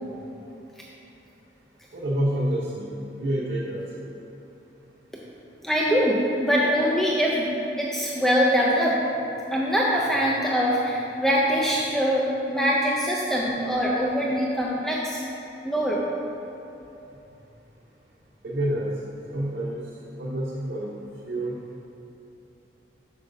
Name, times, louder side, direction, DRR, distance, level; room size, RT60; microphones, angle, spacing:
voice 1, 1.9-3.8 18.4-18.9 19.3-19.8 20.2-20.9 21.2-21.5, right 1 dB, 60° right, -6 dB, 0.7 m, -28 dB
voice 2, 5.6-9.0 9.5-15.2 15.6-16.0, equal, ahead, -4 dB, 0.4 m, -23 dB
7.6 x 6.1 x 2.6 m, 2.9 s
head